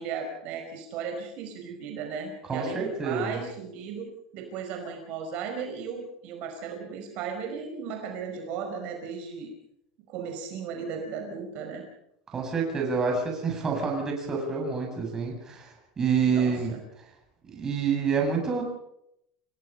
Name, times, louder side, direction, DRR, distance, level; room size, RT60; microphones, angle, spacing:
voice 1, 0.0-9.5 10.1-11.8 16.3-16.8, right 6 dB, 55° right, 3 dB, 5.3 m, -36 dB
voice 2, 2.5-3.4 12.3-16.7 17.5-18.6, right 5 dB, 20° right, 1 dB, 7.6 m, -27 dB
29.5 x 18.5 x 5.7 m, 0.78 s
supercardioid pair, 140°, 3 cm